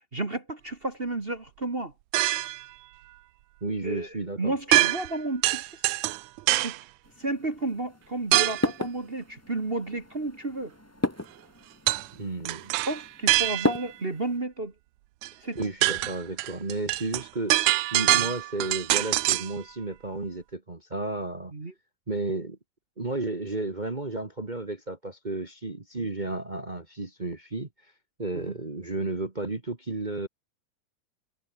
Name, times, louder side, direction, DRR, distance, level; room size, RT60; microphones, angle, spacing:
voice 1, 0.0-1.9 3.8-5.7 6.6-6.7 7.2-10.7 12.9-14.7 15.4-15.6 18.1-18.3 21.5-21.7 26.0-26.1 28.3-28.5, right 2 dB, 30° right, 1.0 m, -32 dB
sound 1, 2.1-2.6 4.7-5.2 5.4-6.8 8.3-8.7 11.9-12.1 12.4-13.9 15.2-15.3 15.6-19.5, right 18 dB, 85° right, 1.6 m, -24 dB
voice 2, 3.6-4.5 12.1-12.7 15.5-21.5 22.1-22.6 23.0-27.7 28.2-30.3, right 2 dB, 50° right, 0.5 m, -33 dB
sound 2, 7.0-14.4, left 1 dB, 20° left, 0.4 m, -35 dB
omnidirectional pair, 4.1 m